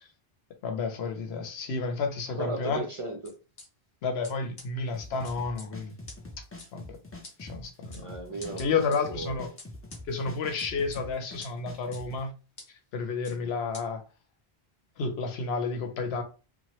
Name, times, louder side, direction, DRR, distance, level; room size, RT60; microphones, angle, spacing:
voice 1, 0.6-2.8 4.0-5.9 6.4-6.5 6.7-7.0 7.4-8.1 8.6-9.5 10.1-12.3 12.9-14.0 15.0-16.2, left 4 dB, 85° left, 0.9 m, -31 dB
voice 2, 2.3-3.3 8.0-9.5 13.3-13.5, right 2 dB, 45° right, 0.4 m, -37 dB
sound 1, 3.2-3.6 4.2-4.3 4.6-4.7 5.2-5.7 6.1-6.2 6.6-6.7 7.2-7.3 7.9-8.0 8.4-9.0 9.6-10.0 10.6-11.0 11.4-11.5 11.9-12.0 12.6-12.7 13.2-13.4 13.7-13.8, left 2 dB, 55° left, 1.3 m, -45 dB
sound 2, 4.9-12.2, left 2 dB, 20° left, 0.4 m, -45 dB
2.9 x 2.1 x 2.9 m
omnidirectional pair, 1.0 m